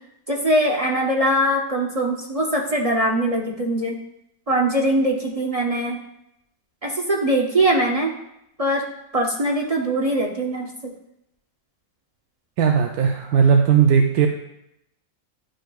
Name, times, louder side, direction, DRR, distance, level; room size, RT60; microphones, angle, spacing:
voice 1, 0.3-4.0 4.5-6.0 6.8-8.1 8.6-8.8 9.1-10.7, right 1 dB, 35° right, -1 dB, 0.6 m, -21 dB
voice 2, 12.6-14.3, right 7 dB, 85° right, 3 dB, 1.1 m, -17 dB
11.0 x 5.0 x 2.3 m, 0.82 s
omnidirectional pair, 1.5 m